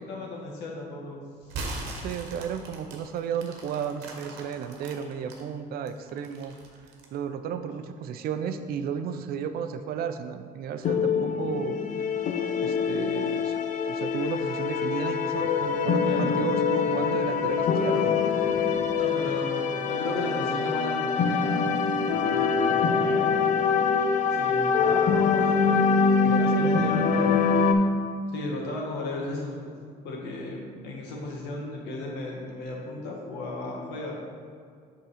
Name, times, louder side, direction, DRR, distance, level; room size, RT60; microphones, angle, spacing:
voice 1, 0.0-1.6 16.0-16.4 19.0-21.8 22.3-23.3 24.3-25.9 26.3-27.5 28.3-29.7 30.0-34.1, left 2 dB, 85° left, -2 dB, 1.4 m, -35 dB
sound 1, 1.4-5.4 5.9-7.2, right 2 dB, 85° right, 1.1 m, -39 dB
voice 2, 2.0-6.6 7.1-11.8 12.6-18.2 26.2-27.4, right 7 dB, 65° right, 9 dB, 0.5 m, -33 dB
sound 2, 10.8-27.7, left 5 dB, 50° left, 0.5 m, -24 dB
5.4 x 3.8 x 5.7 m, 2.2 s
cardioid pair, 110°, 17 cm